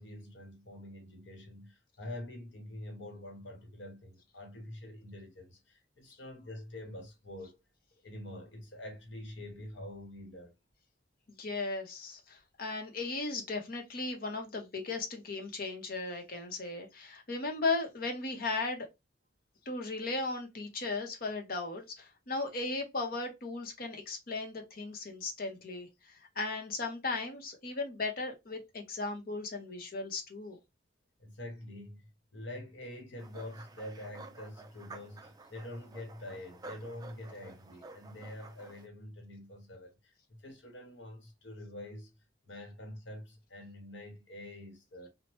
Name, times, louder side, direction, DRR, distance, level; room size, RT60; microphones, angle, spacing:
voice 1, 0.0-7.6 8.0-10.5 31.2-42.1 42.5-45.1, left 1 dB, 75° left, 1.0 m, -46 dB
voice 2, 11.3-18.9 19.7-30.6, left 3 dB, 50° left, 0.8 m, -36 dB
sound 1, 33.2-38.9, right 2 dB, 20° right, 0.3 m, -51 dB
3.0 x 2.1 x 3.0 m
head